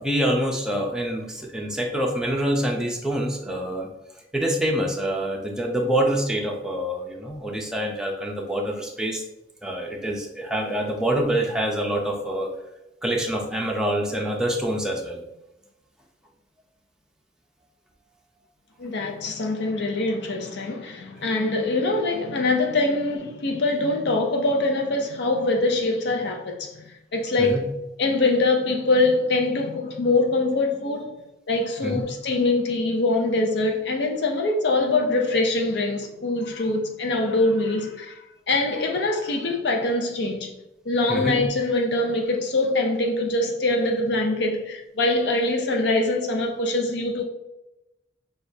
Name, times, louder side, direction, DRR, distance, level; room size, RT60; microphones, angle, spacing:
voice 1, 0.0-3.9 4.3-9.2 9.6-12.5 13.0-15.2 27.4-27.7 31.8-32.1 41.1-41.4, right 1 dB, 5° right, 0.6 m, -26 dB
voice 2, 18.8-27.7 28.0-31.1 31.5-38.2 38.5-40.5 40.9-47.2, left 2 dB, 65° left, 0.5 m, -23 dB
6.2 x 2.3 x 2.7 m
head